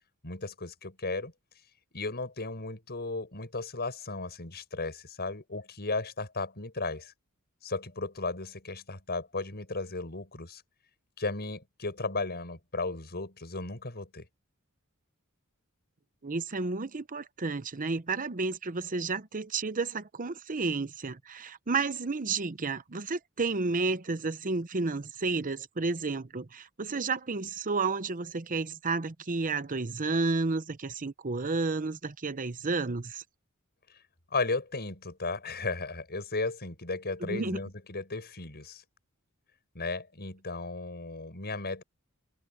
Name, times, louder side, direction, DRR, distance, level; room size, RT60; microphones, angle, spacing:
voice 1, 0.2-1.3 1.9-7.1 7.6-10.6 11.2-14.3 34.3-38.8 39.7-41.8, left 3 dB, 50° left, 6.7 m, -35 dB
voice 2, 16.2-33.2 37.2-37.6, right 3 dB, 40° right, 0.8 m, -31 dB
head